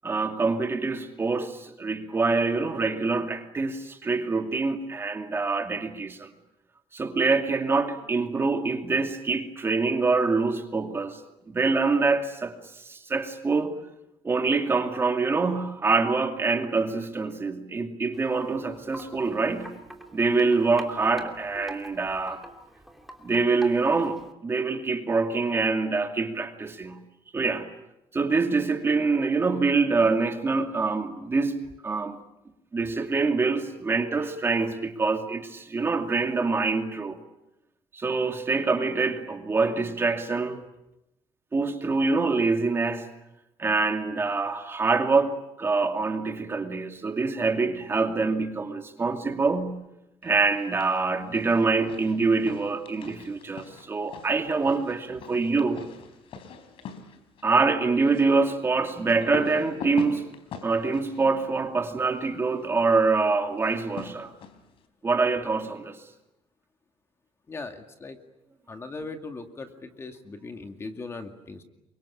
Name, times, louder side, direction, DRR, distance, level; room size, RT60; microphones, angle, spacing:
voice 1, 0.0-6.3 6.9-11.2 11.5-13.8 14.2-19.7 20.1-22.4 23.2-27.0 27.3-27.7 28.1-32.2 32.7-37.2 37.9-40.6 41.5-43.1 43.6-49.8 50.2-55.8 57.4-60.3 60.6-64.3 65.0-66.0, right 4 dB, 25° right, 5 dB, 2.5 m, -25 dB
Wind chime, 18.1-24.3, right 1 dB, ahead, 2.9 m, -45 dB
sound 1, 50.5-51.0 51.3-62.3 63.6-64.8, left 5 dB, 65° left, 3.7 m, -43 dB
voice 2, 67.5-68.2 68.7-71.6, left 3 dB, 25° left, 6 dB, 2.3 m, -39 dB
28.0 x 24.0 x 8.6 m, 0.88 s
cardioid pair, 145°, 10 cm